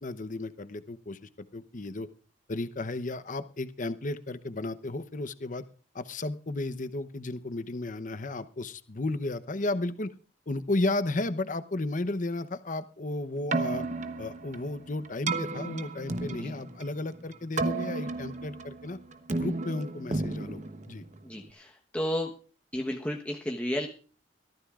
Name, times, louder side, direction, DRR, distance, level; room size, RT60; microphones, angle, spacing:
voice 1, 0.0-2.1 2.5-5.6 5.9-10.1 10.5-13.8 14.2-19.0 19.3-21.0, left 2 dB, 45° left, 12 dB, 0.8 m, -33 dB
Keyboard (musical), 13.3-21.5, right 3 dB, 45° right, 1.0 m, -34 dB
voice 2, 21.2-22.3 22.7-23.9, equal, 10° left, 0 dB, 1.1 m, -32 dB
23.0 x 14.5 x 2.5 m, 0.38 s
head